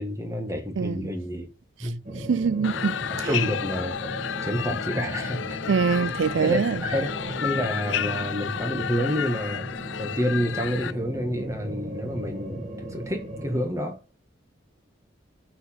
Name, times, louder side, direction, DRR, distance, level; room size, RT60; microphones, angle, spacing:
voice 1, 0.0-1.5 1.8-2.0 3.1-4.2 4.4-5.6 5.9-6.0 6.4-9.7 10.0-14.0, equal, 15° right, 1.7 m, -29 dB
voice 2, 0.8-1.1 2.1-3.3 5.7-6.8, right 5 dB, 80° right, 0.4 m, -24 dB
sound 1, 2.0-13.7, right 1 dB, 40° right, 2.2 m, -36 dB
sound 2, 2.6-10.9, left 9 dB, 75° left, 0.5 m, -32 dB
8.0 x 5.0 x 7.4 m
head